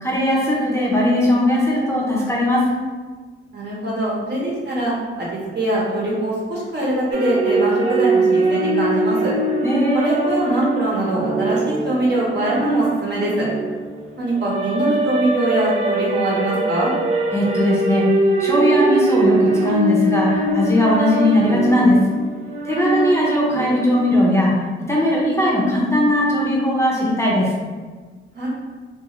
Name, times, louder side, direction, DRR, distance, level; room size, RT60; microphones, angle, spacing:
voice 1, 0.0-2.6 9.6-10.2 17.3-18.1 18.4-22.0 22.6-24.5 24.9-27.5, left 1 dB, 15° left, -5 dB, 0.6 m, -18 dB
voice 2, 3.5-9.3 9.9-13.5 14.2-16.9 28.3-28.5, right 1 dB, 55° right, -5 dB, 0.9 m, -22 dB
sound 1, 7.1-24.1, right 2 dB, 85° right, 0.5 m, -22 dB
2.4 x 2.4 x 3.0 m, 1.4 s
cardioid pair, 90°, 21 cm